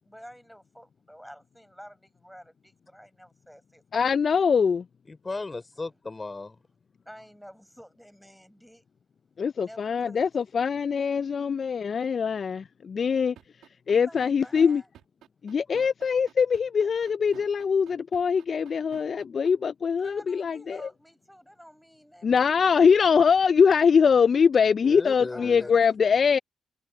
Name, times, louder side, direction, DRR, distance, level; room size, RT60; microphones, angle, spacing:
voice 1, 0.0-3.8 5.5-6.0 7.1-8.8 9.6-10.2 13.9-14.9 20.0-22.7 25.3-25.8, equal, ahead, 7.3 m, -50 dB
voice 2, 3.9-4.8 9.4-13.4 13.9-14.8 15.4-20.8 22.2-26.4, left 6 dB, 50° left, 0.3 m, -23 dB
voice 3, 5.1-6.6 24.8-25.7, left 3 dB, 30° left, 5.0 m, -36 dB
sound 1, 13.4-19.5, right 11 dB, 80° right, 2.1 m, -50 dB
supercardioid pair, 60°, 0 cm